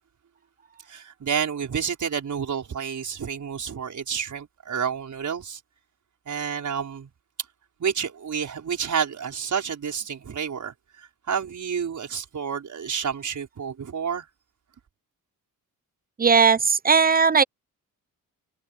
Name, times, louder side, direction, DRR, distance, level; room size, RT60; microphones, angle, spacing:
voice 1, 0.9-5.6 6.3-7.1 7.8-14.3, right 7 dB, 55° right, 5.7 m, -29 dB
voice 2, 16.2-17.4, right 5 dB, 25° right, 0.7 m, -18 dB
cardioid pair, 80°, 36 cm